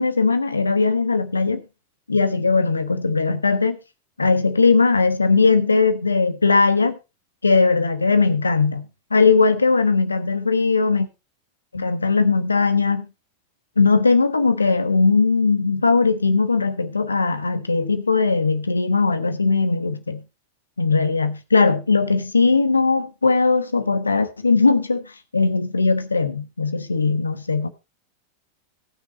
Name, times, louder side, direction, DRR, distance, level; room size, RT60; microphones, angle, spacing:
voice 1, 0.0-1.6 2.1-3.8 4.2-7.0 7.4-8.8 9.1-11.1 11.7-13.1 13.8-20.2 20.8-25.1 25.3-27.7, left 4 dB, 80° left, 1.2 m, -19 dB
18.5 x 6.3 x 4.2 m
figure-of-eight pair, 90°, 0 cm